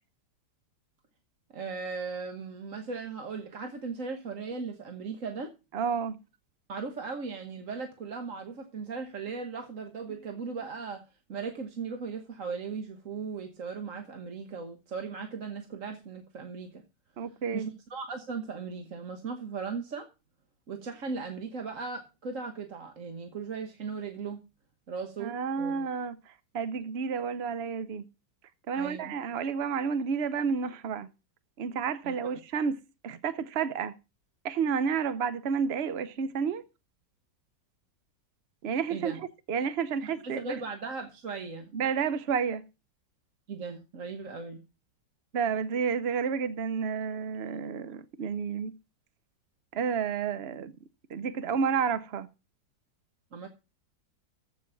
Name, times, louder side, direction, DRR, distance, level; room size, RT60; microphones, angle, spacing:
voice 1, 1.5-5.5 6.7-11.0 11.3-16.8 17.5-20.1 20.7-24.4 24.9-25.7 28.7-29.1 32.0-32.4 38.9-39.2 40.0-41.7 43.5-44.6 53.3-53.5, right 5 dB, 50° right, 1.5 m, -37 dB
voice 2, 5.7-6.2 17.2-17.7 25.2-28.0 28.7-31.1 31.6-33.9 34.4-36.6 38.6-40.6 41.7-42.6 45.3-48.7 49.7-50.7 51.1-52.3, right 6 dB, 65° right, 0.6 m, -30 dB
14.5 x 6.2 x 5.8 m
omnidirectional pair, 1.9 m